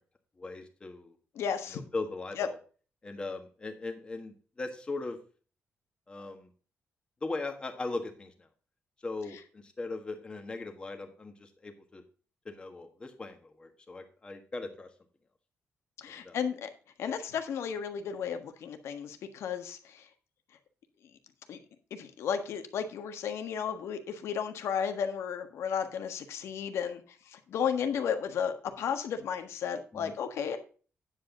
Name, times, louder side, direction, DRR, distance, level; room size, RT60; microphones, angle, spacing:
voice 1, 0.4-1.2 1.7-2.6 3.0-5.2 6.1-6.5 7.2-8.5 9.0-12.0 12.4-14.9 16.1-16.4 29.9-30.1, left 3 dB, 20° left, 5 dB, 1.5 m, -39 dB
voice 2, 1.3-1.8 2.4-2.5 16.0-16.7 17.0-20.0 21.5-21.6 21.9-30.6, left 7 dB, 80° left, 7 dB, 1.5 m, -33 dB
9.6 x 7.7 x 3.8 m, 0.38 s
wide cardioid pair, 160°, 5 cm